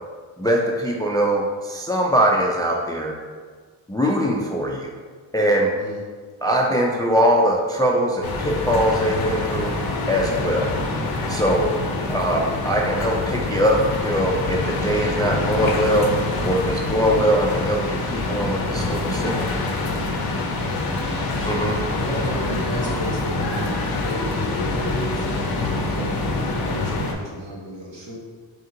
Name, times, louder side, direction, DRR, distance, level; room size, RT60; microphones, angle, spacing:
voice 1, 0.4-3.1 3.9-4.9 5.3-5.7 6.4-9.8 10.1-10.8 11.3-11.7 12.1-19.5 21.4-21.8, equal, 10° left, 0 dB, 0.3 m, -22 dB
sound 1, 8.2-27.1, left 2 dB, 50° left, 0.6 m, -25 dB
voice 2, 12.1-12.4 20.3-28.1, right 1 dB, 60° right, -4 dB, 1.2 m, -35 dB
3.5 x 2.8 x 3.7 m, 1.5 s
cardioid pair, 60°, 49 cm